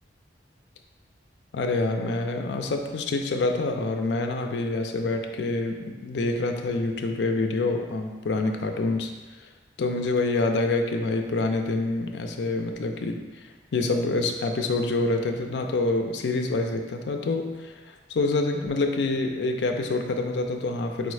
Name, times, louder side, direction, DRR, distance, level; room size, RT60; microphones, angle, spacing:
voice 1, 1.5-9.1 9.8-13.2 13.7-21.1, left 2 dB, 70° left, 4 dB, 0.4 m, -26 dB
4.7 x 2.1 x 4.7 m, 1.3 s
head